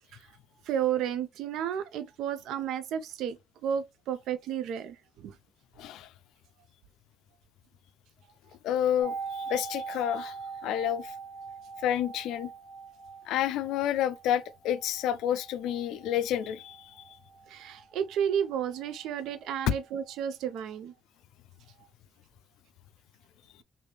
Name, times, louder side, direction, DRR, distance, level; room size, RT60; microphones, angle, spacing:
voice 1, 0.6-3.4 3.6-5.3 17.5-20.9, right 9 dB, 85° right, 0.4 m, -32 dB
voice 2, 5.8-6.1 8.6-10.3 10.6-11.1 11.8-12.5 13.3-16.9 19.7-19.8, left 10 dB, 90° left, 0.3 m, -29 dB
sound 1, 9.0-18.7 19.0-19.1, right 5 dB, 20° right, 1.1 m, -42 dB
3.3 x 2.6 x 3.1 m
cardioid pair, 90°, 0 cm